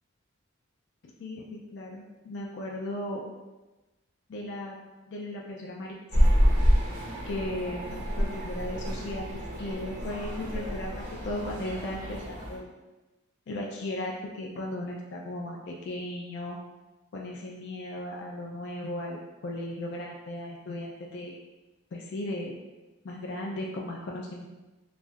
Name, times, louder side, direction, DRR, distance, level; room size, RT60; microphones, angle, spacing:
voice 1, 1.2-3.2 4.3-4.8 5.1-6.3 7.2-12.6 13.5-16.6 17.1-21.3 21.9-22.5 23.0-24.5, left 1 dB, 55° left, -1 dB, 0.3 m, -36 dB
sound 1, 6.1-12.6, equal, 40° right, 0.6 m, -27 dB
3.1 x 2.6 x 2.3 m, 1.1 s
head